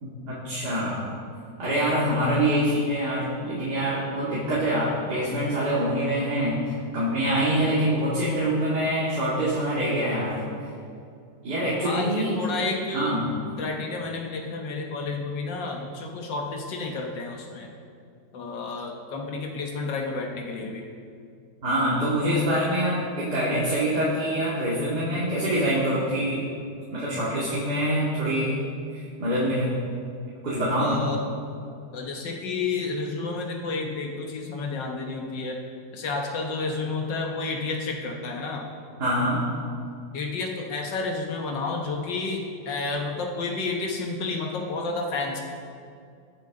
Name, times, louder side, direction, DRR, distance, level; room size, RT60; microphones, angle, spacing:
voice 1, 0.0-1.0 1.6-10.4 11.4-12.3 12.9-13.3 21.6-26.5 26.9-28.6 28.9-29.8 30.4-31.0 39.0-39.4, right 1 dB, 60° right, -9 dB, 3.0 m, -25 dB
voice 2, 11.8-13.2 13.6-17.7 18.3-20.9 30.8-31.2 31.9-35.6 35.9-38.7 40.1-45.4, left 3 dB, 80° left, 1 dB, 1.8 m, -30 dB
22.0 x 7.7 x 3.8 m, 2.4 s
omnidirectional pair, 1.9 m